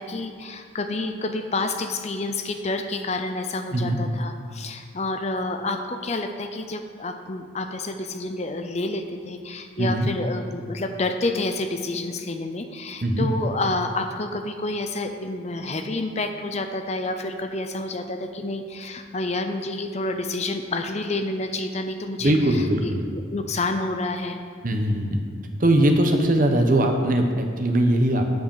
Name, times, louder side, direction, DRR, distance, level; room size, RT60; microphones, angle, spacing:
voice 1, 0.0-24.4, left 2 dB, 35° left, 7 dB, 0.6 m, -29 dB
voice 2, 22.2-23.0 24.6-25.2 25.6-28.3, right 1 dB, 40° right, 4 dB, 1.0 m, -20 dB
7.9 x 7.9 x 7.1 m, 2.2 s
head